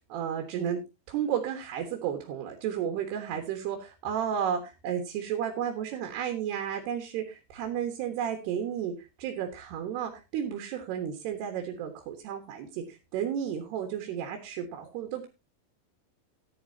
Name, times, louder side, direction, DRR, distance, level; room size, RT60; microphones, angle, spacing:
voice 1, 0.1-0.8 1.1-15.3, right 9 dB, 80° right, 4 dB, 3.6 m, -33 dB
15.0 x 10.5 x 2.8 m, 0.26 s
omnidirectional pair, 4.7 m